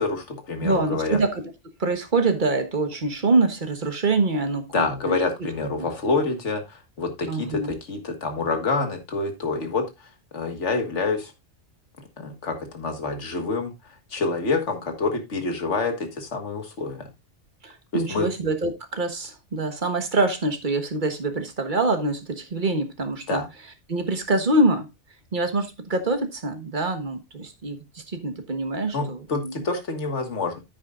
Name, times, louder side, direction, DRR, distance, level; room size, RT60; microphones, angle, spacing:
voice 1, 0.0-1.2 4.7-9.8 10.3-11.3 12.2-13.7 14.1-17.1 17.9-18.3 23.3-23.5 28.9-30.6, left 3 dB, 75° left, 2.0 m, -27 dB
voice 2, 0.6-1.5 1.8-5.2 5.8-5.9 7.3-7.7 17.6-23.4 23.9-24.9 25.3-29.6, right 2 dB, 40° right, 1.5 m, -25 dB
9.8 x 9.3 x 2.5 m
omnidirectional pair, 1.2 m